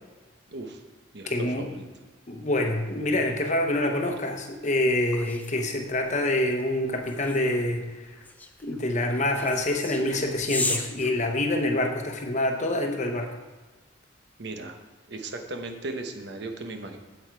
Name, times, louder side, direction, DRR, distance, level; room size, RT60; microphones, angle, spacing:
voice 1, 0.5-0.8 1.1-1.8 14.4-14.8 15.1-17.0, right 2 dB, 60° right, 5 dB, 1.0 m, -36 dB
voice 2, 1.3-1.7 2.3-8.1 8.6-13.4, left 1 dB, 35° left, 4 dB, 0.9 m, -26 dB
sound 1, 4.6-12.0, left 2 dB, 10° left, 0.6 m, -36 dB
8.5 x 7.9 x 4.7 m, 1.2 s
head